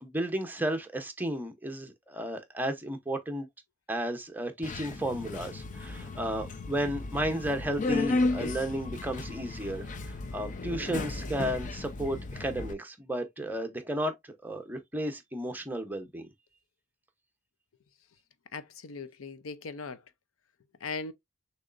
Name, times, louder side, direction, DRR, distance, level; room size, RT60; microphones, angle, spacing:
voice 1, 0.0-3.5 3.9-14.2 14.4-16.2, right 1 dB, 10° right, 0.8 m, -33 dB
Subway metro underground, 4.6-12.7, left 2 dB, 40° left, 0.6 m, -34 dB
voice 2, 18.5-20.0 20.8-21.1, left 4 dB, 85° left, 0.6 m, -39 dB
6.3 x 3.1 x 2.5 m
head